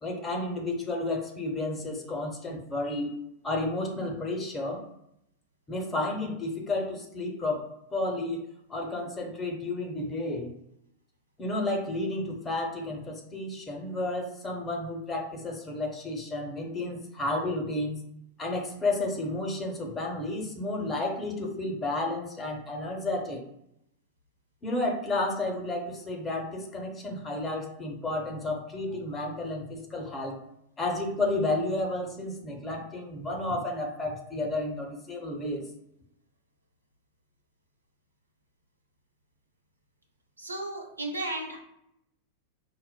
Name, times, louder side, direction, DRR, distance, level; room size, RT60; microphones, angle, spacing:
voice 1, 0.0-3.1 3.4-4.8 5.7-7.6 7.9-10.5 11.4-18.0 18.4-23.4 24.6-30.4 30.8-35.6, left 2 dB, 20° left, 1 dB, 0.8 m, -32 dB
voice 2, 40.4-41.6, right 1 dB, 80° right, 1 dB, 0.7 m, -34 dB
5.6 x 2.0 x 2.2 m, 0.77 s
figure-of-eight pair, 90°, 0 cm